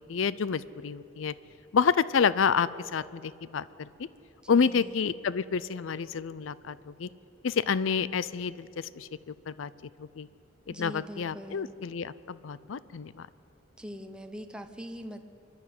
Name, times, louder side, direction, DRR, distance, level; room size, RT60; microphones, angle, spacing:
voice 1, 0.0-1.3 1.7-3.9 4.5-7.1 7.4-9.7 10.0-10.3 10.7-13.3, left 6 dB, 75° left, 18 dB, 0.5 m, -29 dB
voice 2, 4.4-4.9 10.7-11.7 13.8-15.2, equal, 5° right, 7 dB, 0.8 m, -42 dB
25.5 x 12.0 x 9.4 m, 2.9 s
head